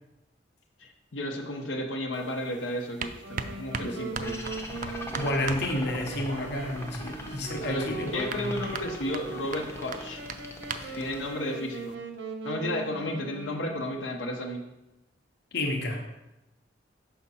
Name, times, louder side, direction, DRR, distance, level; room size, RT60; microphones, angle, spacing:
voice 1, 0.8-3.1 3.4-4.4 4.7-5.1 5.4-5.5 7.6-10.2 11.0-12.0 12.4-14.6, left 1 dB, 90° left, 1 dB, 0.8 m, -33 dB
sound 1, 2.1-11.9, right 5 dB, 45° right, 0.4 m, -41 dB
Wind instrument woodwind instrument, 3.2-14.1, right 3 dB, 80° right, 0.9 m, -40 dB
sound 2, 4.2-11.3, left 1 dB, 15° left, 0.6 m, -42 dB
voice 2, 5.1-8.5 10.8-11.0 15.5-16.0, left 1 dB, 60° left, 3 dB, 0.9 m, -31 dB
5.8 x 5.7 x 4.2 m, 0.94 s
head